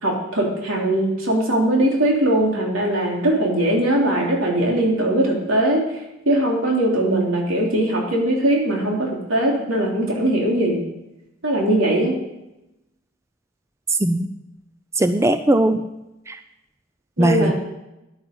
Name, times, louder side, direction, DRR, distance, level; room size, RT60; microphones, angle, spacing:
voice 1, 0.0-5.8 6.2-10.8 11.4-12.1 17.2-17.5, right 1 dB, 90° right, -1 dB, 3.4 m, -20 dB
voice 2, 15.0-15.8 16.3-16.4 17.2-17.5, right 1 dB, 15° right, 9 dB, 0.4 m, -18 dB
11.0 x 9.4 x 5.4 m, 0.93 s
head